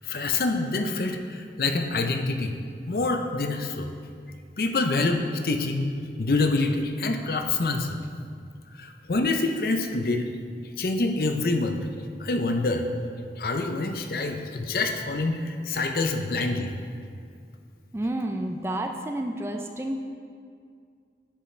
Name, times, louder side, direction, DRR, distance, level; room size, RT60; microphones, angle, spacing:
voice 1, 0.1-2.5 2.9-3.9 4.6-5.9 6.2-7.9 8.8-10.3 10.8-11.8 12.2-12.9 13.4-16.7, left 3 dB, 55° left, 5 dB, 0.5 m, -26 dB
voice 2, 17.9-20.0, right 1 dB, 15° right, 4 dB, 0.3 m, -30 dB
9.9 x 5.6 x 3.2 m, 2.3 s
head